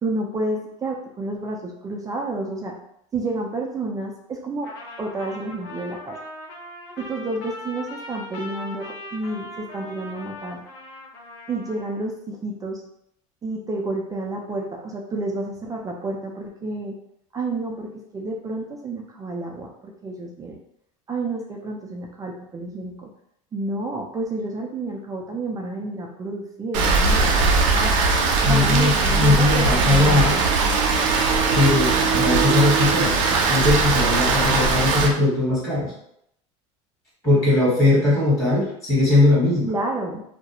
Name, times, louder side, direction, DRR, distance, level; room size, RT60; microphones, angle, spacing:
voice 1, 0.0-2.8 3.1-4.7 5.0-6.1 7.0-10.6 11.5-12.8 13.4-17.0 17.3-20.6 21.1-23.1 23.5-27.9 28.4-30.5 39.7-40.2, right 2 dB, 20° right, 0 dB, 0.4 m, -30 dB
Trumpet, 4.6-12.0, left 1 dB, 70° left, 0.7 m, -39 dB
Rain, 26.7-35.1, right 4 dB, 75° right, 0.5 m, -20 dB
voice 2, 28.4-30.4 31.5-35.9 37.2-39.7, left 2 dB, 20° left, -7 dB, 1.3 m, -20 dB
2.3 x 2.1 x 2.8 m, 0.73 s
supercardioid pair, 115°, 17 cm